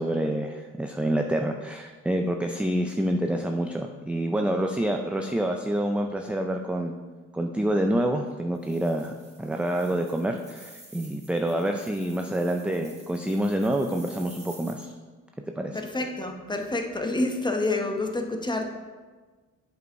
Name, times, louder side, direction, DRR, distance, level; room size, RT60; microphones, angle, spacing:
voice 1, 0.0-6.9 7.3-9.1 9.4-14.9 15.6-15.8, right 1 dB, 5° right, 4 dB, 0.3 m, -27 dB
sound 1, 8.5-14.9, right 2 dB, 20° right, 1.8 m, -51 dB
voice 2, 15.7-18.7, left 2 dB, 15° left, 3 dB, 0.9 m, -28 dB
8.0 x 5.1 x 4.6 m, 1.4 s
cardioid pair, 100°, 34 cm